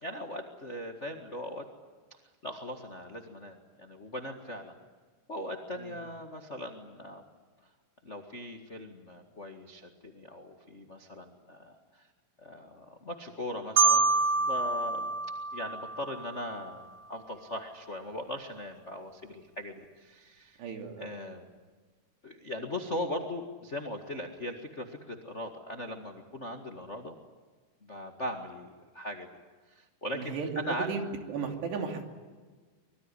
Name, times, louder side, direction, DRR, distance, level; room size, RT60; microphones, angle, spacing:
voice 1, 0.0-1.7 2.1-4.7 5.3-7.2 8.0-12.1 12.4-15.1 15.5-20.6 21.0-21.5 22.2-27.1 27.8-28.7 28.9-29.3 29.7-30.9, left 1 dB, 90° left, 4 dB, 0.6 m, -39 dB
Marimba xylophone, 13.8-16.6, right 4 dB, 50° right, 1.3 m, -27 dB
voice 2, 20.6-21.2 30.1-32.0, right 5 dB, 85° right, 4 dB, 5.0 m, -35 dB
25.0 x 22.5 x 9.9 m, 1.4 s
omnidirectional pair, 4.7 m